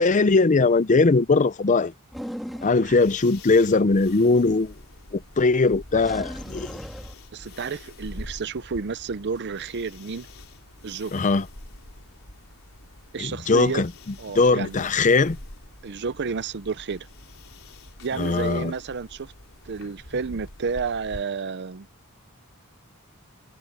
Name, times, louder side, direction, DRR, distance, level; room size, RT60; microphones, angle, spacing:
voice 1, 0.0-1.9 2.6-4.7 5.1-6.8 11.1-11.5 13.2-13.9 14.3-15.4 18.2-18.7, left 3 dB, 35° left, 0.5 m, -20 dB
sound 1, 2.1-3.0 5.6-7.2, equal, ahead, 1.6 m, -37 dB
sound 2, 2.8-21.2, left 1 dB, 65° left, 5.0 m, -46 dB
voice 2, 7.3-10.3 10.8-11.3 13.1-13.8 14.2-14.8 15.8-17.1 18.0-19.3 19.7-21.9, right 5 dB, 50° right, 0.6 m, -31 dB
head